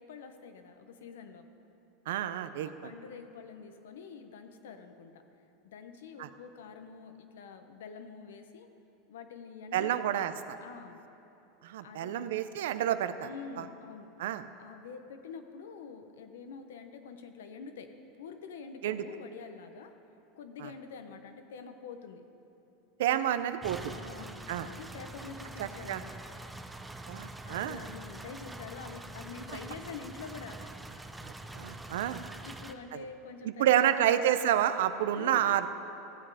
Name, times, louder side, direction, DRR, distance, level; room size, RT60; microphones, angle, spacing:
voice 1, 0.0-1.5 2.8-5.1 5.6-8.7 9.1-10.2 10.6-11.0 11.8-12.3 13.2-14.1 14.6-17.9 18.2-19.9 20.4-22.2 23.9-26.1 27.4-30.7 32.5-34.2 35.1-35.5, left 5 dB, 80° left, 7 dB, 0.9 m, -46 dB
voice 2, 2.1-2.9 6.2-6.3 9.7-10.6 11.6-13.3 13.6-13.7 14.2-14.4 18.8-19.0 20.6-20.7 23.0-24.0 24.5-24.7 25.6-26.0 27.1-27.8 31.2-32.2 33.4-35.7, right 11 dB, 75° right, 12 dB, 0.5 m, -29 dB
sound 1, 23.6-32.7, right 2 dB, 10° right, 0.6 m, -45 dB
15.0 x 7.6 x 4.9 m, 3.0 s
hypercardioid pair, 105°, 0 cm